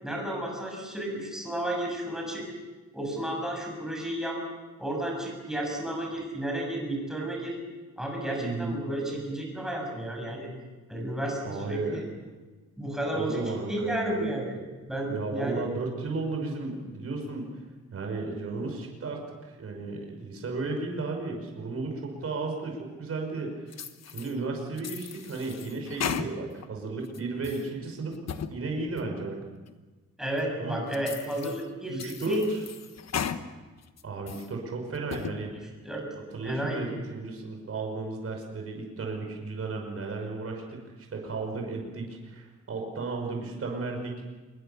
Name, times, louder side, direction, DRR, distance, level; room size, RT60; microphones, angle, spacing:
voice 1, 0.0-2.4 2.9-4.4 4.8-7.6 8.0-10.5 10.9-12.0 12.8-13.4 13.7-14.6 14.9-15.6 30.2-32.5 35.8-36.8, right 1 dB, ahead, 0 dB, 7.0 m, -32 dB
voice 2, 8.4-8.7 11.4-12.0 13.2-14.3 15.1-17.5 17.9-19.2 19.6-23.6 24.1-28.2 28.5-29.4 30.6-30.8 31.9-32.4 34.0-35.5 36.2-44.2, right 3 dB, 50° right, 1 dB, 5.7 m, -34 dB
sound 1, 23.7-24.3 24.8-26.7 27.1-27.7 28.1-28.5 29.0-29.1 29.7-29.8 30.4-30.5 30.9-31.6 32.0-33.4 33.8-34.5 34.9-35.4, left 8 dB, 60° left, 1.3 m, -36 dB
26.0 x 21.5 x 7.0 m, 1.3 s
wide cardioid pair, 165°, 29 cm